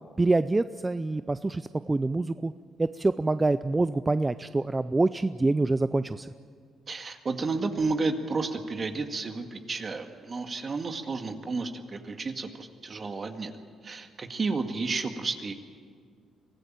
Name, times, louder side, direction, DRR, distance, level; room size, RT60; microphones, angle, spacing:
voice 1, 0.2-2.5 2.8-6.3, right 2 dB, 20° right, 12 dB, 0.5 m, -26 dB
voice 2, 6.9-13.5 13.8-15.5, right 3 dB, 40° right, 6 dB, 2.0 m, -31 dB
24.0 x 16.0 x 9.0 m, 2.1 s
cardioid pair, 90°, 0 cm